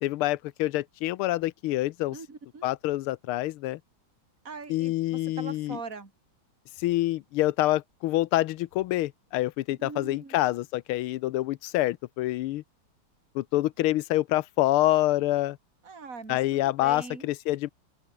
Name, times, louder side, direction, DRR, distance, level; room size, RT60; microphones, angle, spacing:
voice 1, 0.0-2.2 2.6-3.8 4.7-5.8 6.8-12.6 13.3-15.6 16.3-17.7, left 16 dB, 85° left, 1.5 m, -26 dB
voice 2, 2.1-2.7 4.4-6.1 9.8-10.3 15.8-17.3, right 4 dB, 40° right, 4.1 m, -42 dB
open air
omnidirectional pair, 2.4 m